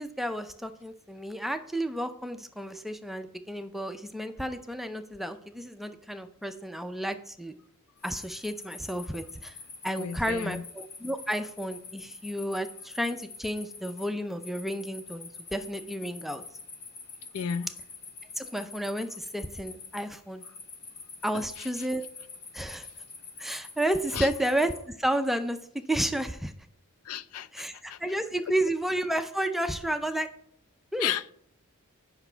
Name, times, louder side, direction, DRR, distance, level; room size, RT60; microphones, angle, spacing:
voice 1, 0.0-7.5 8.0-9.6 9.8-16.4 18.4-20.4 21.2-22.1 22.5-22.9 23.4-26.5 27.5-30.3 30.9-31.1, right 1 dB, ahead, 0.4 m, -31 dB
sound 1, 8.0-24.8, left 4 dB, 45° left, 1.8 m, -46 dB
voice 2, 10.0-10.6 17.3-17.7 21.3-21.4 24.1-24.3 27.1-27.5 27.9-28.0 31.0-31.3, left 8 dB, 85° left, 0.4 m, -32 dB
8.1 x 5.8 x 4.4 m
head